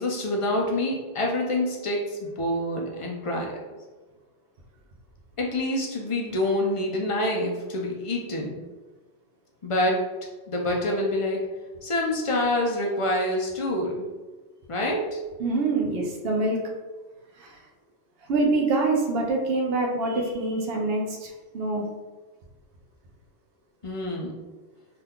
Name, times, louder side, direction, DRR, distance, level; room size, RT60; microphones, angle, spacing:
voice 1, 0.0-3.5 5.4-8.6 9.6-10.0 10.5-11.4 11.8-14.1 14.7-15.2 23.8-24.4, left 1 dB, 50° left, 0 dB, 0.4 m, -26 dB
voice 2, 15.4-16.6 17.4-17.6 18.3-21.8, right 3 dB, 70° right, 0 dB, 0.8 m, -25 dB
2.8 x 2.3 x 3.5 m, 1.2 s
omnidirectional pair, 1.1 m